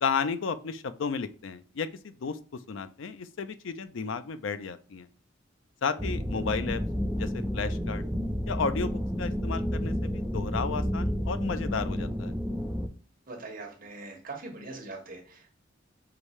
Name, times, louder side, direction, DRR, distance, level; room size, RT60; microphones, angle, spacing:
voice 1, 0.0-2.4 2.7-5.1 5.8-6.8 7.2-8.0 8.5-12.3, left 5 dB, 75° left, 12 dB, 0.4 m, -33 dB
sound 1, 6.0-12.9, equal, 5° right, 0.4 m, -31 dB
voice 2, 13.3-15.5, right 3 dB, 45° right, 0 dB, 1.3 m, -42 dB
4.7 x 2.7 x 3.1 m, 0.41 s
head